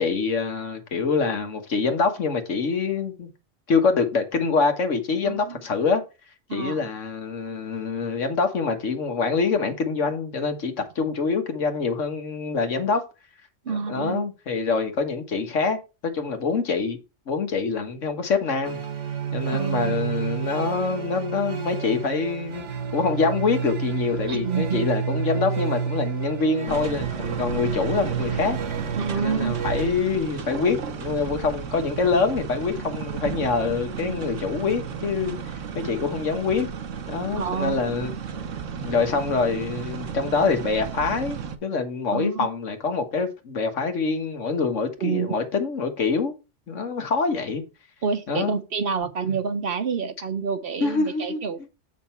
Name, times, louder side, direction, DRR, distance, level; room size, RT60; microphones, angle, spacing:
voice 1, 0.0-3.3 3.7-6.0 6.5-13.0 13.7-17.0 17.3-18.8 19.3-22.6 22.9-28.6 29.1-35.4 35.8-36.7 37.1-38.1 38.8-46.3 46.7-47.6 48.3-48.6 49.3-49.4 50.8-51.7, left 4 dB, 90° left, 1.7 m, -25 dB
voice 2, 5.3-5.6 6.5-6.8 13.7-14.2 19.5-20.0 24.3-24.9 29.0-29.6 37.3-37.8 42.1-42.5 45.0-45.4 48.0-51.6, right 6 dB, 55° right, 0.9 m, -28 dB
sound 1, 18.6-29.9, right 7 dB, 75° right, 1.5 m, -30 dB
sound 2, 26.7-41.6, right 7 dB, 90° right, 1.3 m, -33 dB
7.6 x 5.8 x 4.4 m
omnidirectional pair, 1.2 m